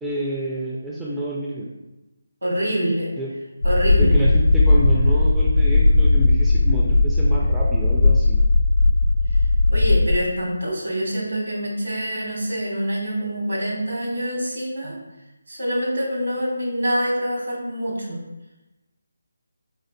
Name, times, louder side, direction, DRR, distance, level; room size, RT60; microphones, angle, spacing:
voice 1, 0.0-1.7 3.2-3.3 4.0-8.4, right 1 dB, 5° right, -6 dB, 0.3 m, -28 dB
voice 2, 2.4-3.1 3.6-4.1 9.3-9.4 9.7-15.0 15.5-18.2, equal, 65° right, -4 dB, 1.4 m, -25 dB
sound 1, 3.6-10.2, left 2 dB, 70° left, 0.4 m, -17 dB
4.2 x 2.5 x 2.4 m, 1.0 s
figure-of-eight pair, 155°, 0 cm